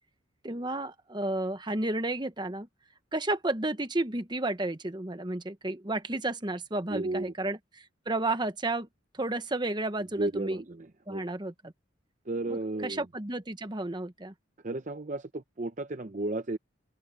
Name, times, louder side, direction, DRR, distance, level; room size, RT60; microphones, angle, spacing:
voice 1, 0.4-2.7 3.1-8.9 9.1-10.6 11.1-11.7 12.5-14.3, right 2 dB, 20° right, 1.1 m, -32 dB
voice 2, 6.9-7.3 10.2-11.2 12.3-13.1 14.6-16.6, right 2 dB, 40° right, 0.7 m, -34 dB
open air
head